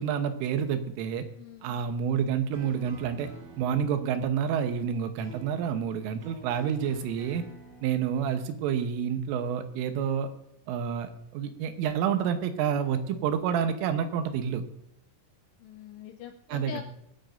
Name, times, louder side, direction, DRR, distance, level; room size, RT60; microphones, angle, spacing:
voice 1, 0.0-1.3 1.6-3.3 3.6-7.5 7.8-10.3 10.7-14.6 16.5-16.8, right 8 dB, 85° right, 8 dB, 3.5 m, -29 dB
voice 2, 1.4-1.8 15.6-16.8, left 9 dB, 85° left, 6 dB, 2.5 m, -43 dB
sound 1, 2.5-7.9, right 3 dB, 60° right, 6.4 m, -50 dB
23.0 x 9.3 x 2.6 m, 0.79 s
omnidirectional pair, 5.7 m